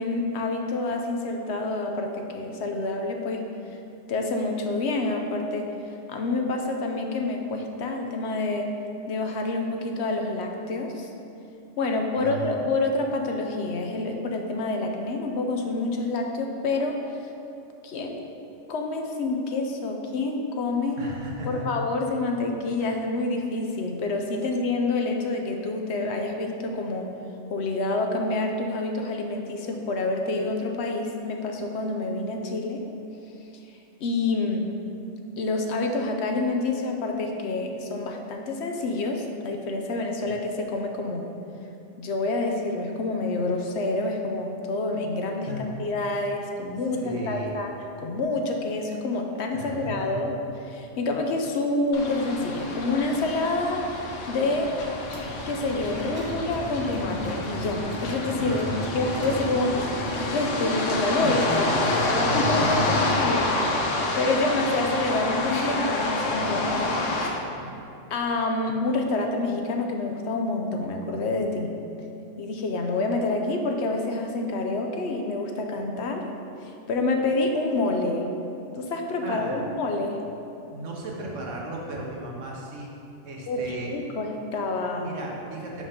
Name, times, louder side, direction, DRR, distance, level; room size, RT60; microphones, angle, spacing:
voice 1, 0.0-3.4 4.1-5.7 6.1-8.7 9.1-11.1 11.8-17.0 17.8-18.3 18.7-21.0 21.5-27.1 27.5-32.8 34.0-34.7 35.4-41.3 42.0-47.7 48.0-50.3 50.6-53.9 54.3-54.7 55.5-61.7 62.3-67.0 68.1-71.7 72.4-76.2 76.6-78.2 78.7-80.2 83.5-85.1, left 2 dB, 70° left, 3 dB, 0.9 m, -27 dB
voice 2, 12.2-12.6 21.0-21.7 40.2-40.3 45.4-45.7 47.0-47.5 49.5-50.2 58.4-58.8 61.2-61.9 62.2-62.8 63.2-63.3 67.4-67.7 79.2-79.7 80.7-82.9 83.2-83.9 84.9-85.8, right 2 dB, 85° right, -2 dB, 1.4 m, -35 dB
sound 1, 51.9-67.3, left 2 dB, 85° left, 1.1 m, -28 dB
sound 2, 55.0-60.5, right 1 dB, 30° right, 0.5 m, -37 dB
5.5 x 5.1 x 5.0 m, 2.7 s
omnidirectional pair, 1.2 m